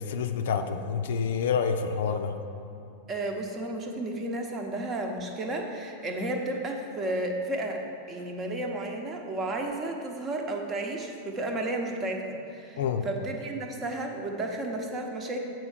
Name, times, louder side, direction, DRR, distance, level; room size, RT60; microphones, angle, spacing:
voice 1, 0.0-2.3 12.8-13.1, left 6 dB, 60° left, 7 dB, 0.4 m, -28 dB
voice 2, 3.1-15.4, right 2 dB, 25° right, 3 dB, 0.9 m, -32 dB
8.0 x 4.5 x 6.4 m, 2.7 s
figure-of-eight pair, 90°, 0 cm